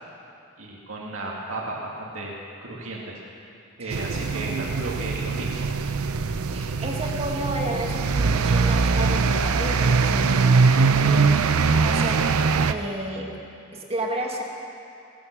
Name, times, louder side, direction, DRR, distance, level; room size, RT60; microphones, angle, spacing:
voice 1, 0.6-2.3 2.6-3.2 3.8-5.7, right 2 dB, 70° right, -3 dB, 2.2 m, -34 dB
sound 1, 3.9-12.7, right 4 dB, 90° right, 0.6 m, -22 dB
voice 2, 6.5-10.6 11.0-12.2 12.6-13.3 13.7-14.4, right 1 dB, 30° right, 1 dB, 1.7 m, -31 dB
18.0 x 13.0 x 6.0 m, 2.7 s
head